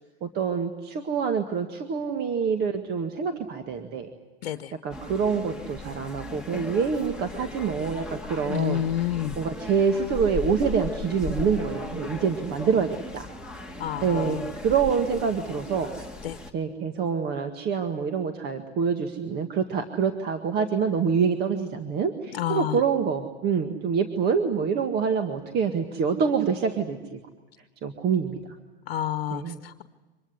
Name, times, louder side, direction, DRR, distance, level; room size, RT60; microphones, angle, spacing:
voice 1, 0.2-4.1 4.5-4.6 4.8-8.8 9.4-13.3 14.0-14.4 14.6-16.1 16.5-27.2 27.8-28.4 29.3-29.6, right 6 dB, 30° right, 6 dB, 1.9 m, -26 dB
voice 2, 4.4-4.7 8.4-9.4 13.8-14.4 16.2-16.4 22.3-22.8 28.9-29.8, left 11 dB, 65° left, 10 dB, 1.2 m, -29 dB
sound 1, 4.9-16.5, left 3 dB, 5° right, 2.0 m, -37 dB
25.0 x 20.5 x 9.7 m, 1.2 s
hypercardioid pair, 115°, 31 cm